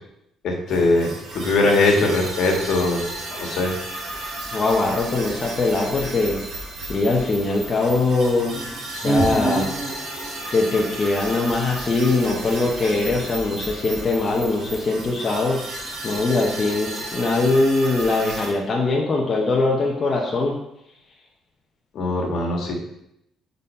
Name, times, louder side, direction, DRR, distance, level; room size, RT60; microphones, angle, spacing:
voice 1, 0.4-3.0 3.4-3.7 21.9-22.7, left 2 dB, 60° left, 0 dB, 1.6 m, -21 dB
sound 1, 0.7-17.2, right 2 dB, 5° right, 1.2 m, -35 dB
sound 2, 0.7-18.5, right 1 dB, 75° right, 2.3 m, -34 dB
voice 2, 4.5-6.4 6.8-8.5 8.9-9.7 10.5-15.6 16.0-20.5, left 3 dB, 30° left, -2 dB, 0.9 m, -21 dB
5.6 x 4.0 x 5.5 m, 0.81 s
cardioid pair, 140°, 0 cm